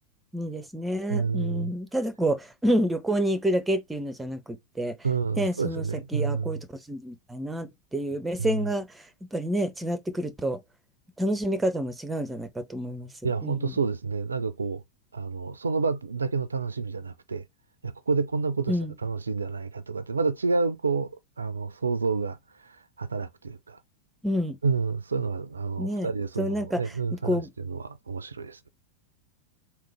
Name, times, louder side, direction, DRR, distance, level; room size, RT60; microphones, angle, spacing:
voice 1, 0.3-5.0 5.4-10.6 11.2-13.1 13.4-13.7 18.7-18.9 24.2-24.6 25.8-26.1 26.4-26.8 27.1-27.5, equal, 10° right, 0.7 m, -28 dB
voice 2, 1.1-1.7 5.0-6.6 8.4-8.6 13.2-14.8 15.1-17.5 17.8-18.8 19.0-21.1 21.4-23.8 24.6-28.7, right 4 dB, 75° right, 0.4 m, -29 dB
3.8 x 2.9 x 3.4 m
figure-of-eight pair, 90°, 0 cm